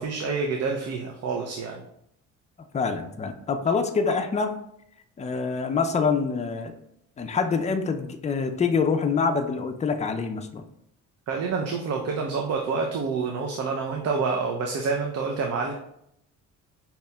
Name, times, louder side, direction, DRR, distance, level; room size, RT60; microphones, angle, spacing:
voice 1, 0.0-1.8 11.3-15.7, right 4 dB, 55° right, 2 dB, 0.5 m, -28 dB
voice 2, 2.7-4.5 5.2-6.7 7.2-10.6, left 5 dB, 25° left, 6 dB, 0.4 m, -25 dB
5.3 x 2.8 x 2.2 m, 0.75 s
cardioid pair, 90°, 30 cm